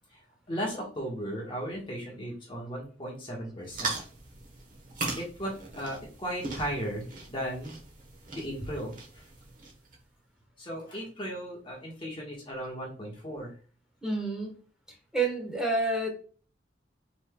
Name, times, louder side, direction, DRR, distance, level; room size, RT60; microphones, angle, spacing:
voice 1, 0.5-4.0 5.1-7.8 8.3-9.2 10.6-13.5, equal, 30° left, -3 dB, 1.3 m, -36 dB
sound 1, 3.6-10.0, right 3 dB, 45° right, 1.1 m, -39 dB
voice 2, 14.0-14.6 15.1-16.1, right 2 dB, 5° right, 0 dB, 1.1 m, -28 dB
5.4 x 3.3 x 2.2 m, 0.39 s
head